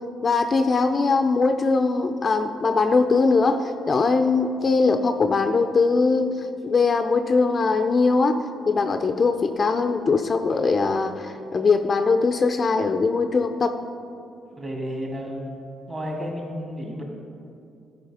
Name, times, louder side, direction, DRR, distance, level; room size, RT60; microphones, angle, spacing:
voice 1, 0.2-13.7, left 4 dB, 40° left, 7 dB, 0.5 m, -21 dB
voice 2, 14.4-15.5 15.9-17.0, equal, 30° right, 0 dB, 2.2 m, -32 dB
12.0 x 4.9 x 4.9 m, 2.5 s
cardioid pair, 90°, 0 cm